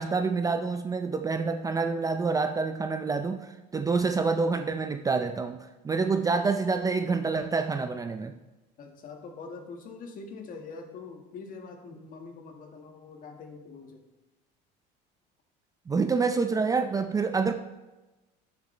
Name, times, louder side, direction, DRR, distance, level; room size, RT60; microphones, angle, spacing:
voice 1, 0.0-8.3 15.9-17.5, right 4 dB, 20° right, 8 dB, 0.4 m, -27 dB
voice 2, 8.8-14.0, left 4 dB, 45° left, 3 dB, 1.7 m, -44 dB
12.5 x 7.5 x 3.3 m, 1.1 s
cardioid pair, 120°, 19 cm